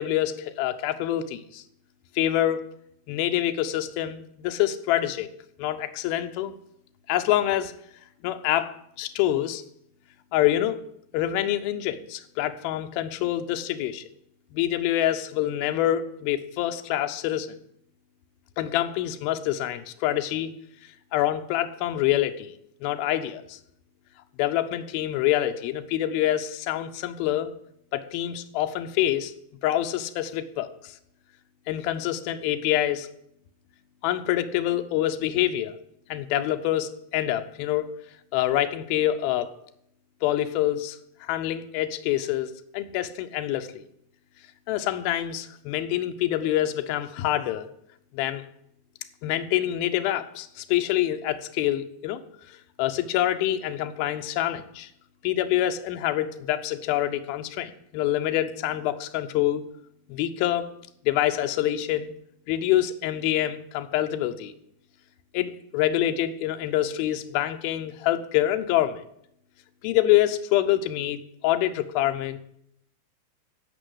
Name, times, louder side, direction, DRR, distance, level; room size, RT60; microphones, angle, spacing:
voice 1, 0.0-1.6 2.2-2.6 3.1-5.3 5.6-6.5 7.1-7.7 8.2-9.6 10.3-10.8 11.1-14.1 14.5-17.6 18.6-20.5 21.1-23.6 24.4-27.5 27.9-29.3 29.6-30.9 31.7-33.1 34.0-35.7 36.1-37.9 38.3-39.5 40.2-43.8 44.7-47.7 48.1-48.4 49.2-52.2 52.8-54.9 55.2-59.6 60.1-60.7 61.1-62.1 62.5-64.5 65.3-69.0 69.8-72.4, left 13 dB, 80° left, 7 dB, 2.3 m, -26 dB
15.5 x 5.3 x 7.9 m, 0.73 s
omnidirectional pair, 5.1 m